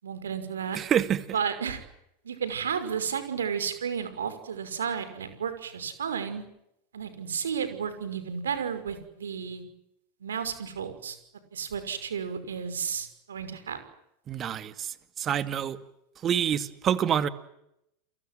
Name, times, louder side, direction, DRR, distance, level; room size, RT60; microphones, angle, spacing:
voice 1, 0.0-0.8 1.3-1.8 2.2-6.4 6.9-9.6 10.2-11.2 11.5-13.8, right 7 dB, 90° right, 5.8 m, -32 dB
voice 2, 0.7-1.2 14.3-15.8 16.2-17.3, right 9 dB, 35° right, 2.4 m, -27 dB
30.0 x 23.5 x 7.8 m
hypercardioid pair, 100°, 0 cm